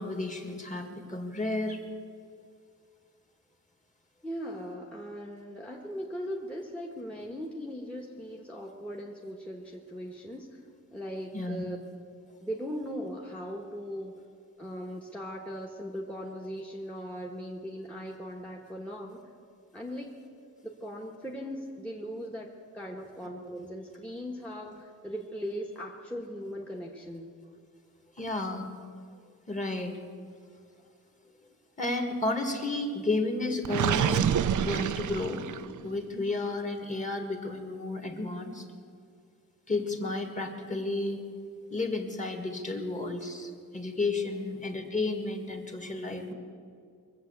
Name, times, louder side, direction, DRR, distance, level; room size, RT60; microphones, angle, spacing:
voice 1, 0.0-1.8 11.3-11.6 28.2-28.7 29.5-30.0 31.8-35.5 35.8-38.7 39.7-41.2 41.7-46.3, left 2 dB, 20° left, 4 dB, 1.9 m, -32 dB
voice 2, 4.2-10.6 10.9-11.8 12.4-14.2 14.6-19.3 19.7-20.2 20.6-22.5 22.7-27.3 44.2-45.0, equal, 5° left, 0 dB, 1.3 m, -39 dB
Gurgling, 33.6-35.8, right 9 dB, 65° right, 0.5 m, -27 dB
23.0 x 7.6 x 8.0 m, 2.3 s
wide cardioid pair, 120°, 33 cm